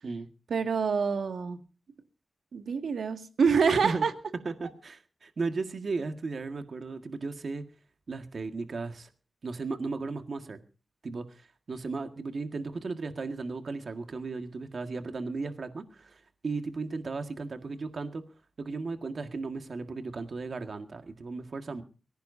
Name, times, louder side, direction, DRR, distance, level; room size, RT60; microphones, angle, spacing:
voice 1, 0.5-1.6 2.5-4.1, right 5 dB, 90° right, 6 dB, 2.0 m, -26 dB
voice 2, 4.5-7.6 8.1-9.1 9.4-10.6 11.0-18.2 18.6-21.8, right 3 dB, 55° right, 7 dB, 1.8 m, -35 dB
24.0 x 16.0 x 2.7 m, 0.37 s
wide cardioid pair, 115°, 0 cm